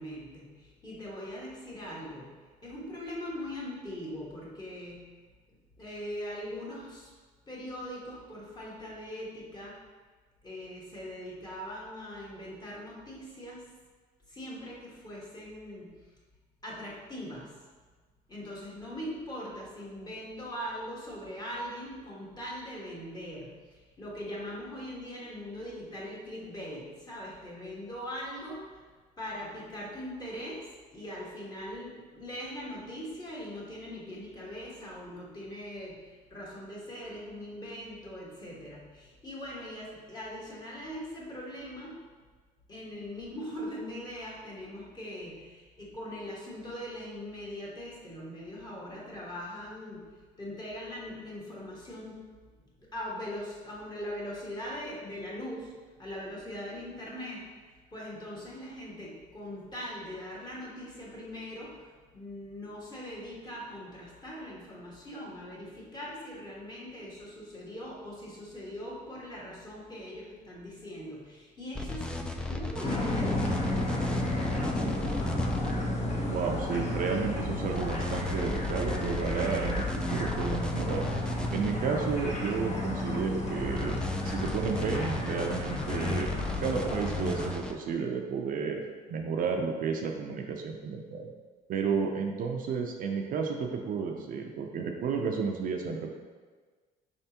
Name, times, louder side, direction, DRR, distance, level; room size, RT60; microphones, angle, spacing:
voice 1, 0.0-5.2 5.8-7.1 7.5-9.8 10.4-13.6 14.3-16.1 16.6-17.6 18.3-28.9 29.2-42.0 42.7-52.3 52.6-72.1 72.5-73.8, equal, 25° left, -5 dB, 1.3 m, -41 dB
sound 1, 71.7-75.7 77.7-81.7 83.7-87.7, left 2 dB, 5° left, 0.3 m, -36 dB
sound 2, 72.8-87.6, left 1 dB, 40° left, 0.9 m, -32 dB
voice 2, 76.3-81.1 81.5-86.3 86.6-88.8 89.1-91.3 91.7-96.1, right 5 dB, 55° right, 2 dB, 0.5 m, -32 dB
4.9 x 3.4 x 2.8 m, 1.4 s
cardioid pair, 110°, 17 cm